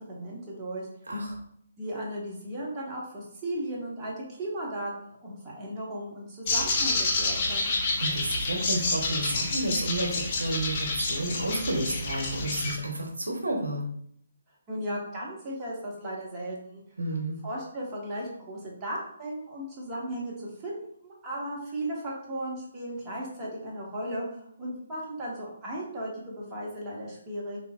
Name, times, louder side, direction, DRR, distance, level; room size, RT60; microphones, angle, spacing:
voice 1, 0.1-0.9 1.8-7.8 14.7-16.8 17.4-27.6, right 1 dB, 20° right, -5 dB, 0.9 m, -36 dB
voice 2, 1.1-1.4 8.0-13.8 17.0-17.4, right 1 dB, 80° right, 1 dB, 0.7 m, -31 dB
sound 1, 6.5-12.7, left 2 dB, 35° left, 0.7 m, -29 dB
3.3 x 2.6 x 2.3 m, 0.68 s
figure-of-eight pair, 140°, 0 cm